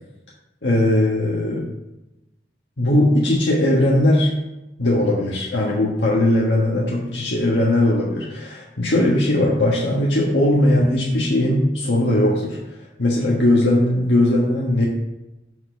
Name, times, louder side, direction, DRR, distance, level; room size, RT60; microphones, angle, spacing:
voice 1, 0.6-1.7 2.8-4.3 4.8-12.6 13.0-14.9, left 1 dB, 80° left, -4 dB, 1.3 m, -19 dB
7.6 x 4.0 x 6.8 m, 0.97 s
head